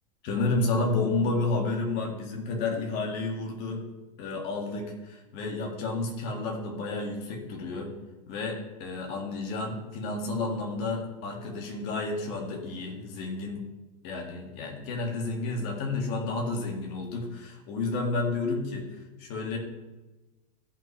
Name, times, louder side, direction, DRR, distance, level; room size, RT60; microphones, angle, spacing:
voice 1, 0.2-3.8 4.2-7.9 8.3-13.6 14.0-19.6, left 3 dB, 50° left, 1 dB, 2.3 m, -31 dB
14.5 x 5.9 x 3.4 m, 1.1 s
supercardioid pair, 140°, 21 cm